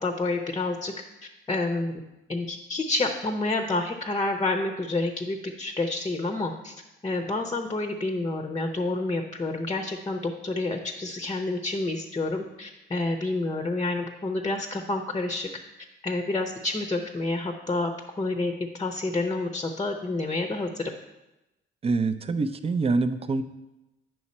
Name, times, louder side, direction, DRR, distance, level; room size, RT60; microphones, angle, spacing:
voice 1, 0.0-0.9 1.5-1.9 2.3-6.7 7.0-15.5 16.0-17.9 18.2-18.5 18.8-20.9, left 2 dB, 20° left, 5 dB, 0.7 m, -28 dB
voice 2, 21.8-23.4, right 3 dB, 30° right, 10 dB, 0.5 m, -25 dB
8.4 x 5.9 x 4.2 m, 0.99 s
cardioid pair, 90°, 20 cm